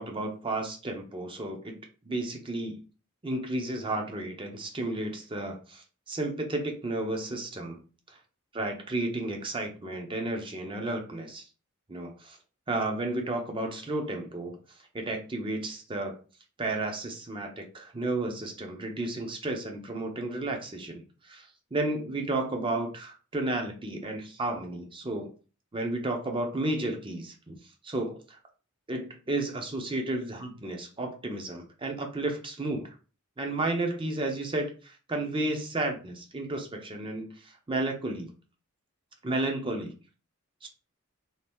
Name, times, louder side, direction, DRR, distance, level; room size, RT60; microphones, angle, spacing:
voice 1, 0.0-1.8 2.0-2.8 3.2-7.8 8.6-11.4 11.9-12.4 12.7-14.6 14.9-16.2 16.6-25.3 25.7-27.6 27.8-28.4 28.9-32.9 33.4-38.3 39.2-39.9 40.6-40.7, right 2 dB, 25° right, 3 dB, 0.6 m, -32 dB
2.8 x 2.6 x 3.4 m, 0.35 s
head